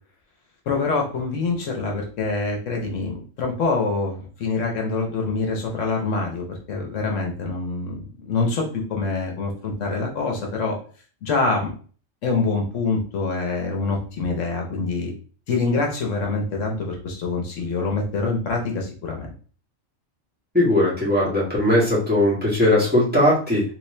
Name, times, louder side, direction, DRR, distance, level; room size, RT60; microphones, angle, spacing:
voice 1, 0.7-10.8 11.2-11.7 12.2-15.1 15.5-19.3, left 3 dB, 70° left, 1 dB, 1.1 m, -25 dB
voice 2, 20.5-23.7, left 1 dB, 5° right, -7 dB, 1.5 m, -19 dB
3.2 x 2.9 x 3.1 m, 0.41 s
omnidirectional pair, 1.4 m